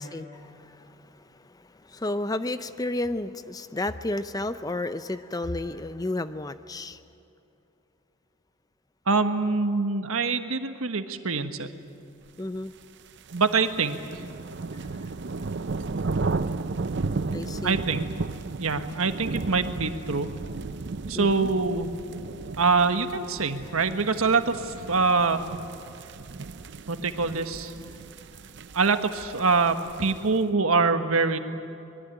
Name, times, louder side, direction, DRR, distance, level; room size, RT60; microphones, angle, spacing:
voice 1, 0.0-7.0 12.4-12.7 17.2-17.8 21.1-21.5, left 2 dB, 15° left, 12 dB, 0.5 m, -32 dB
voice 2, 9.1-11.7 13.3-14.0 17.6-18.0 18.6-20.3 21.1-21.9 22.6-25.4 26.9-27.7 28.7-31.4, right 4 dB, 80° right, 8 dB, 1.4 m, -24 dB
sound 1, 12.8-30.4, right 3 dB, 55° right, 0.6 m, -34 dB
24.5 x 21.5 x 9.1 m, 2.7 s
head